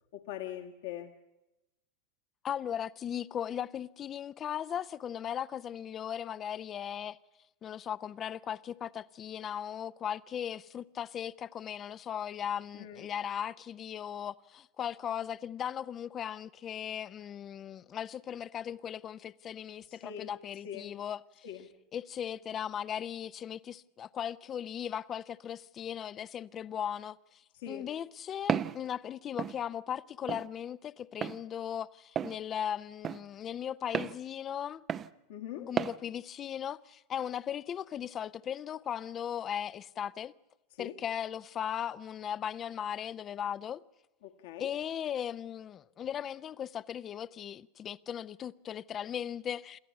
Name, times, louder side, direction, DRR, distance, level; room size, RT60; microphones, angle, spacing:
voice 1, 0.1-1.1 12.7-13.1 19.9-20.3 20.6-20.9 21.4-21.7 27.5-27.9 35.3-35.7 40.7-41.0 44.2-44.7, left 10 dB, 65° left, 1.6 m, -42 dB
voice 2, 2.4-7.2 7.6-21.5 21.9-34.8 35.6-40.3 40.8-43.8 44.6-49.8, left 9 dB, 30° left, 0.7 m, -38 dB
Walk footsteps, 28.5-28.8 29.4-29.6 30.3-30.5 31.2-31.4 32.2-32.4 33.0-33.2 33.9-34.2 34.9-35.1 35.8-36.0, right 8 dB, 30° right, 0.7 m, -32 dB
27.5 x 14.0 x 8.3 m
hypercardioid pair, 90°, 0 cm